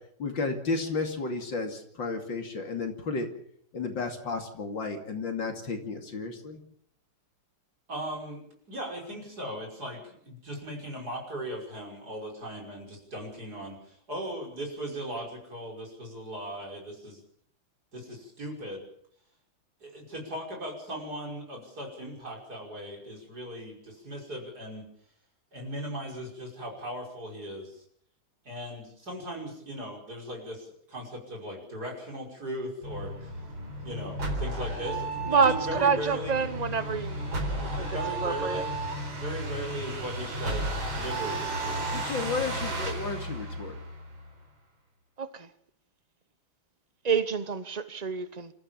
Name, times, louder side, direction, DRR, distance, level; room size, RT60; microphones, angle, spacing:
voice 1, 0.2-3.3 3.7-6.6 41.9-43.7, left 4 dB, 55° left, 3.2 m, -32 dB
voice 2, 7.9-17.2 17.9-18.8 19.8-24.9 25.5-27.8 28.4-33.2 33.8-36.5 37.6-38.7 39.1-41.8, equal, 45° right, 6.3 m, -38 dB
sound 1, 32.8-44.3, right 1 dB, 60° right, 5.3 m, -33 dB
voice 3, 35.3-37.2 37.6-37.9 38.2-38.6 47.0-48.5, right 5 dB, 90° right, 0.3 m, -27 dB
27.5 x 14.0 x 7.2 m
omnidirectional pair, 2.4 m